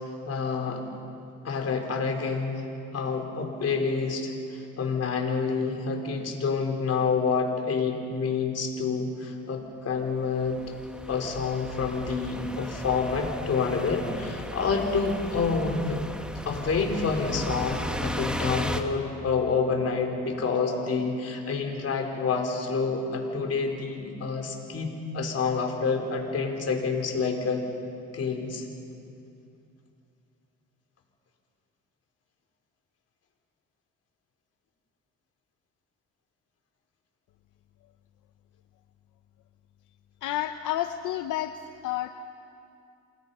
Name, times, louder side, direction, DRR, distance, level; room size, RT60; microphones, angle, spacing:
voice 1, 0.3-0.8 1.4-2.6 2.9-10.6 11.1-16.0 16.5-27.6 28.1-28.6, left 5 dB, 55° left, 2 dB, 4.0 m, -28 dB
sound 1, 10.1-10.2 10.4-18.8, equal, 5° right, 1.7 m, -35 dB
voice 2, 40.2-41.6 41.8-42.1, left 13 dB, 90° left, 8 dB, 0.7 m, -30 dB
28.0 x 20.5 x 5.5 m, 2.6 s
cardioid pair, 90°, 30 cm